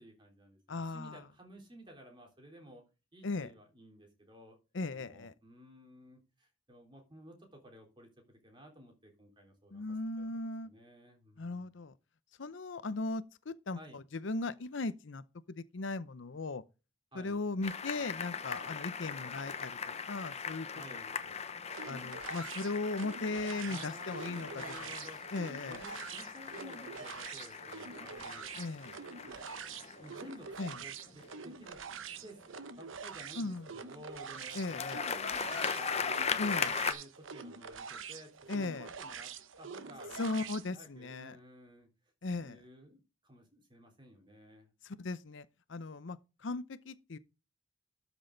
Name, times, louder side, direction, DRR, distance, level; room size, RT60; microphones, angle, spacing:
voice 1, 0.0-2.8 3.1-4.6 4.9-9.8 10.2-11.7 13.8-14.0 17.1-17.4 20.7-21.2 23.7-25.2 25.7-28.7 29.3-29.5 30.0-31.8 32.2-32.4 32.8-36.3 36.6-39.3 39.6-41.9 42.4-44.7, equal, 25° right, 3.6 m, -54 dB
voice 2, 0.7-1.2 3.2-3.5 4.7-5.3 9.7-10.7 11.4-11.9 12.4-16.6 17.1-20.7 21.8-24.9 25.3-25.8 28.6-29.0 30.6-30.7 33.3-33.7 34.5-35.0 36.4-36.8 38.5-38.9 40.2-41.4 42.2-42.6 44.8-47.2, left 3 dB, 70° left, 0.7 m, -38 dB
sound 1, 17.6-31.7 34.3-36.9, left 6 dB, 35° left, 0.9 m, -39 dB
sound 2, 21.7-40.7, right 6 dB, 85° right, 0.9 m, -46 dB
13.0 x 6.2 x 3.9 m
head